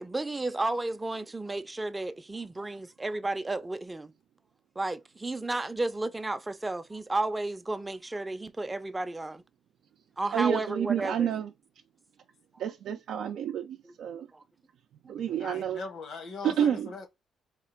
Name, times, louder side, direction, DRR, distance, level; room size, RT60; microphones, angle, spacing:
voice 1, 0.0-4.1 4.8-9.4 10.2-11.3 14.3-14.4, right 2 dB, 15° right, 0.5 m, -32 dB
voice 2, 10.3-11.5 12.6-14.3 15.1-15.8 16.4-16.9, right 9 dB, 75° right, 0.4 m, -29 dB
voice 3, 15.4-17.1, left 4 dB, 65° left, 1.0 m, -40 dB
3.6 x 2.4 x 4.4 m
cardioid pair, 90°, 0 cm